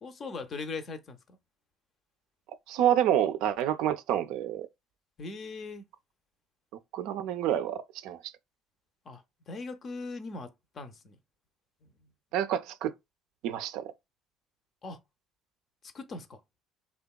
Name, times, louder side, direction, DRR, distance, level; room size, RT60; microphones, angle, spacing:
voice 1, 0.0-1.4 5.2-5.8 9.1-11.2 11.8-12.1 14.8-15.0 15.9-16.4, left 3 dB, 45° left, 0.5 m, -40 dB
voice 2, 2.7-4.7 6.9-8.2 12.3-12.9 13.4-13.8, right 11 dB, 70° right, 0.3 m, -28 dB
2.8 x 2.1 x 2.2 m
hypercardioid pair, 60°, 0 cm